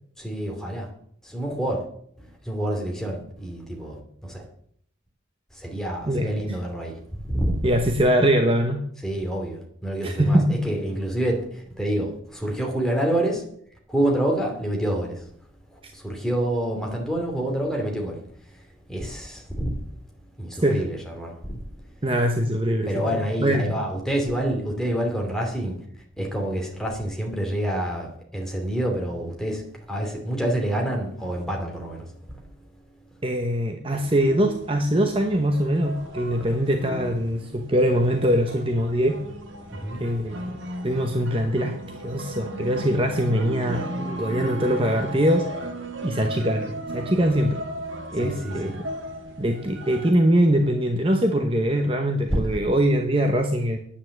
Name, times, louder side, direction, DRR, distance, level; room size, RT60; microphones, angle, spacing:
voice 1, 0.2-0.9 1.2-1.9 2.2-4.5 5.5-7.6 9.0-13.4 13.9-15.3 15.7-18.6 18.9-19.8 20.4-21.6 22.9-32.1 39.7-40.1 48.1-48.7 52.3-52.4, right 1 dB, 5° left, 2.6 m, -28 dB
voice 2, 7.6-8.8 10.0-10.6 15.8-15.9 20.6-20.8 22.0-23.7 33.2-39.2 40.0-40.5 40.8-41.8 42.0-45.5 46.0-47.6 48.1-48.9 49.4-53.8, equal, 25° right, 0.9 m, -22 dB
sound 1, 33.9-50.1, right 1 dB, 70° right, 2.0 m, -36 dB
9.7 x 8.6 x 7.7 m
head